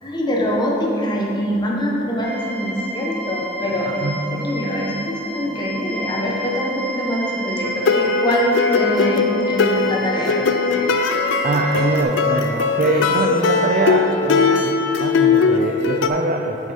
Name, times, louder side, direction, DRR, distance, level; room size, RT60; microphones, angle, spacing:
voice 1, 0.0-4.1 4.4-10.8, equal, 25° left, -2 dB, 1.1 m, -24 dB
sound 1, 2.2-12.0, right 1 dB, 60° left, 1.3 m, -31 dB
voice 2, 3.8-4.3 11.4-16.7, right 2 dB, 45° right, 2 dB, 0.5 m, -23 dB
sound 2, 7.6-16.1, left 4 dB, 80° left, 0.5 m, -19 dB
8.6 x 6.3 x 4.2 m, 2.9 s
head